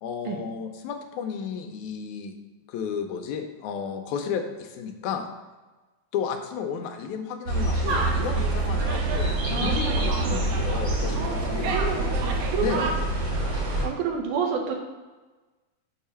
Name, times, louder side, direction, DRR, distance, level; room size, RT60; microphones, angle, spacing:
voice 1, 0.0-2.3 2.7-5.3 6.1-11.8 12.6-12.9 13.8-13.9, left 7 dB, 90° left, 4 dB, 2.0 m, -33 dB
sound 1, 7.5-13.9, right 2 dB, 55° right, 2.8 m, -26 dB
sound 2, 7.9-12.9, right 4 dB, 75° right, 1.5 m, -33 dB
voice 2, 9.5-10.4 11.1-12.1 12.5-12.9 13.8-14.7, right 6 dB, 90° right, 1 dB, 2.2 m, -30 dB
5.4 x 4.8 x 5.5 m, 1.2 s
omnidirectional pair, 3.4 m